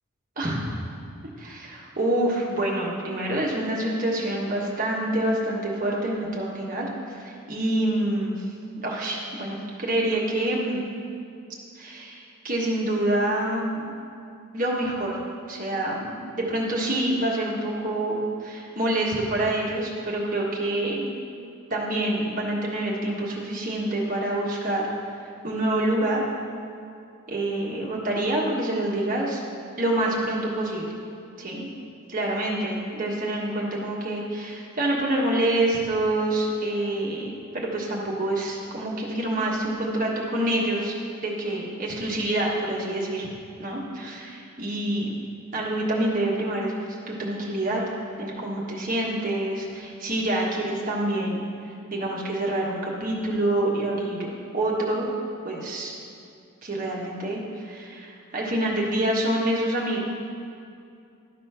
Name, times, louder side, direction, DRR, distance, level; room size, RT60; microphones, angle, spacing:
voice 1, 1.4-8.4 8.8-10.8 11.8-13.8 14.5-15.2 15.5-21.1 21.7-24.9 25.4-26.2 27.3-29.4 29.8-30.9 31.4-31.7 32.1-40.9 41.2-43.3 43.6-45.1 45.5-46.7 47.1-47.8 48.2-51.4 51.9-55.1 55.4-55.9 56.6-60.0, right 1 dB, 40° right, -3 dB, 1.4 m, -27 dB
12.0 x 4.3 x 5.7 m, 2.5 s
head